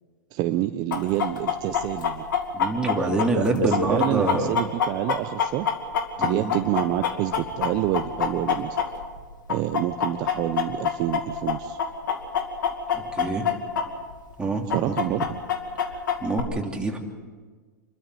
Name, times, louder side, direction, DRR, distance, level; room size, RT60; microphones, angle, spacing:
voice 1, 0.3-2.2 3.3-5.7 6.2-8.8 9.5-11.8 14.7-15.4, right 14 dB, 40° right, 9 dB, 0.8 m, -27 dB
Chicken rooster, 0.9-9.2 9.5-13.8 14.1-14.2 14.7-16.4, left 7 dB, 75° left, 2.5 m, -25 dB
voice 2, 2.5-4.6 6.2-6.6 12.9-13.5 14.4-15.3 16.2-17.0, right 2 dB, 10° right, 0 dB, 3.1 m, -26 dB
27.0 x 13.0 x 7.8 m, 1.5 s
hypercardioid pair, 115°, 10 cm